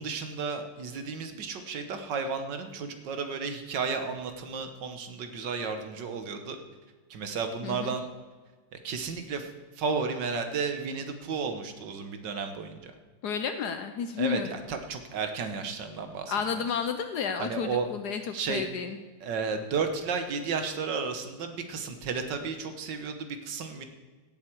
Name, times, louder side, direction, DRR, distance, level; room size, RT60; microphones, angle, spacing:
voice 1, 0.0-6.6 7.1-8.1 8.7-9.5 9.8-12.9 14.2-16.6 17.4-17.9 18.3-18.7 19.2-23.8, right 5 dB, 70° right, 7 dB, 1.8 m, -33 dB
voice 2, 7.6-7.9 13.2-14.6 16.3-19.0, left 6 dB, 70° left, 8 dB, 1.2 m, -31 dB
16.5 x 7.7 x 4.6 m, 1.4 s
omnidirectional pair, 2.0 m